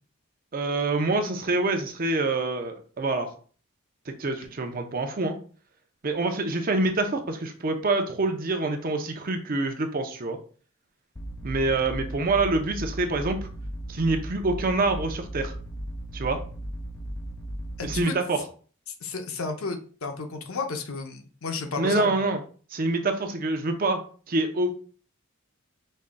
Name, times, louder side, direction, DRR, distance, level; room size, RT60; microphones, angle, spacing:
voice 1, 0.5-3.3 4.1-5.4 6.0-10.4 11.4-13.4 13.9-15.5 16.1-16.4 17.8-18.4 21.8-22.4 22.7-24.0 24.3-24.8, right 2 dB, 40° right, 5 dB, 0.6 m, -26 dB
sound 1, 11.2-18.0, equal, 15° left, 0.4 m, -36 dB
voice 2, 17.8-18.1 18.9-22.2, left 4 dB, 70° left, 5 dB, 0.7 m, -32 dB
5.3 x 3.7 x 2.2 m, 0.41 s
head